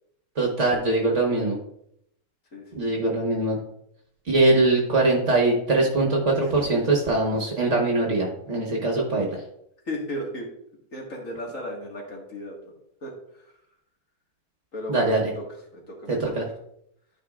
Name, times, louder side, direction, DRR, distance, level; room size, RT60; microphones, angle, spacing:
voice 1, 0.4-1.6 2.7-3.6 4.3-9.4 14.9-15.2 16.1-16.4, right 2 dB, 55° right, -1 dB, 1.6 m, -22 dB
voice 2, 2.5-2.8 6.4-6.5 9.3-9.4 9.9-10.5 10.9-12.6 13.0-13.4 14.7-15.4 15.7-16.4, equal, 60° left, -1 dB, 2.2 m, -35 dB
12.5 x 5.0 x 2.4 m, 0.73 s
omnidirectional pair, 1.6 m